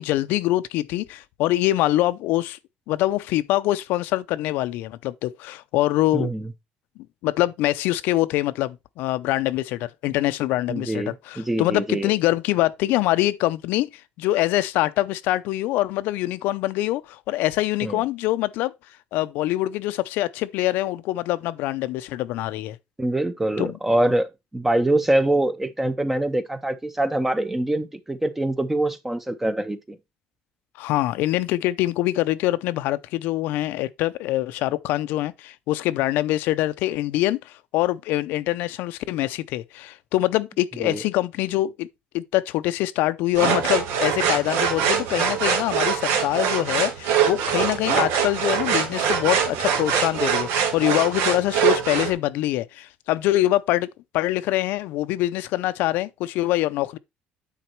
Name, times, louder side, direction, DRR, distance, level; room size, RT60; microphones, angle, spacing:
voice 1, 0.0-2.6 2.9-6.3 7.2-13.9 14.2-18.7 19.1-22.8 23.6-23.8 30.8-41.9 42.1-53.9 54.1-57.0, left 16 dB, 75° left, 0.5 m, -24 dB
voice 2, 6.1-6.5 10.7-12.1 17.8-18.0 23.0-30.0 40.8-41.0, right 1 dB, 5° right, 0.6 m, -24 dB
sound 1, 43.3-52.1, right 7 dB, 90° right, 2.0 m, -23 dB
9.3 x 4.0 x 4.3 m
cardioid pair, 175°, 3 cm